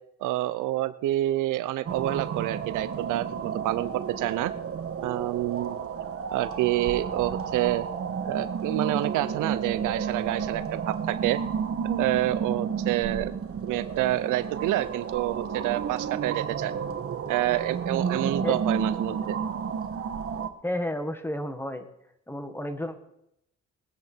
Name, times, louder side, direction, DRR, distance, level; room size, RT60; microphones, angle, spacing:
voice 1, 0.2-4.5 5.0-5.8 6.3-7.9 8.2-11.4 11.8-13.3 13.6-16.7 17.3-19.4, right 15 dB, 90° right, 14 dB, 0.7 m, -28 dB
sound 1, 1.9-20.5, right 7 dB, 50° right, 1.3 m, -31 dB
voice 2, 20.6-21.9 22.3-23.0, left 1 dB, 5° left, 8 dB, 1.6 m, -31 dB
21.0 x 9.5 x 4.5 m, 0.81 s
cardioid pair, 90°, 30 cm